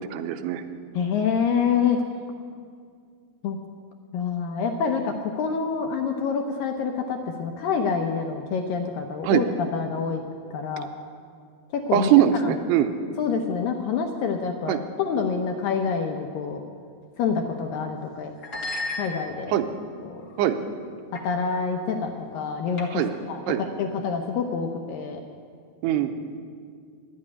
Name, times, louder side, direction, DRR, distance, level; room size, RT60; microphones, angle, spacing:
voice 1, 0.1-0.6 9.2-9.4 11.9-12.9 14.7-14.8 19.5-19.7 20.4-20.6 22.9-23.1 23.5-23.6 25.8-26.1, right 11 dB, 90° right, 8 dB, 2.8 m, -21 dB
voice 2, 0.9-2.0 3.4-3.6 4.1-9.5 9.7-10.2 10.5-10.9 11.7-12.5 13.2-16.6 17.2-18.3 19.0-19.6 20.1-20.2 21.2-23.0 23.3-25.2, left 6 dB, 75° left, 4 dB, 2.1 m, -27 dB
sound 1, 17.5-17.7 18.4-19.6 20.2-20.5 21.2-21.3 21.6-21.8 22.8-23.2, left 2 dB, 45° left, 1.3 m, -35 dB
11.5 x 8.4 x 9.8 m, 2.2 s
omnidirectional pair, 4.7 m